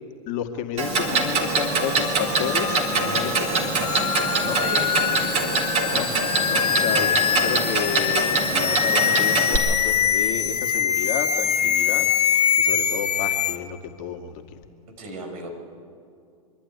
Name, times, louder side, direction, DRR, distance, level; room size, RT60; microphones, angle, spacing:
voice 1, 0.3-4.1 4.4-4.6 5.9-7.2 7.4-14.6, left 9 dB, 45° left, 4 dB, 2.2 m, -32 dB
Clock, 0.8-9.6, right 3 dB, 35° right, 3.4 m, -24 dB
sound 1, 1.3-13.6, left 8 dB, 80° left, 1.2 m, -24 dB
voice 2, 4.6-5.7 6.6-6.8 15.0-15.5, right 2 dB, 65° right, 2 dB, 5.3 m, -36 dB
25.5 x 11.5 x 9.7 m, 2.3 s
hypercardioid pair, 110°, 20 cm